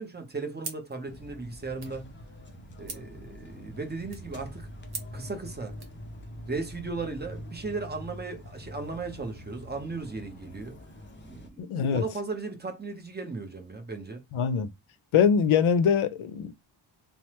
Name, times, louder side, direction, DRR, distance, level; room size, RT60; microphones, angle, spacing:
voice 1, 0.0-2.1 2.8-4.7 5.1-5.7 6.5-10.8 11.2-11.6 11.9-14.2, right 3 dB, 20° right, 0.7 m, -36 dB
sound 1, 0.6-6.0, right 4 dB, 50° right, 1.1 m, -46 dB
sound 2, 1.1-11.5, left 1 dB, 25° left, 0.5 m, -44 dB
voice 2, 11.6-12.0 14.3-14.7 15.1-16.5, left 7 dB, 85° left, 0.6 m, -23 dB
3.2 x 2.0 x 2.9 m
wide cardioid pair, 145°, 48 cm